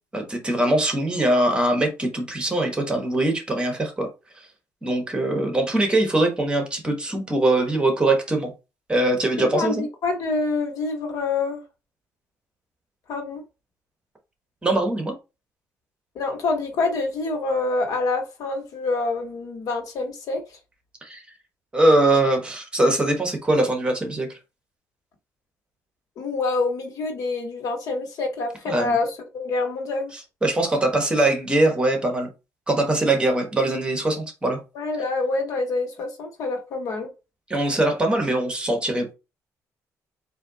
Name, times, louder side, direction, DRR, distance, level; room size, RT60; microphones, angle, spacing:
voice 1, 0.1-4.1 4.8-8.5 8.9-9.8 14.6-15.1 21.0-21.2 21.7-24.3 28.7-29.0 30.4-32.3 32.7-34.6 37.5-39.1, right 1 dB, 15° right, 1.3 m, -22 dB
voice 2, 9.5-11.6 13.1-13.4 16.1-20.4 26.2-29.1 29.3-30.1 34.7-37.1, left 3 dB, 70° left, 1.4 m, -26 dB
4.2 x 2.7 x 4.0 m
cardioid pair, 120°, 6 cm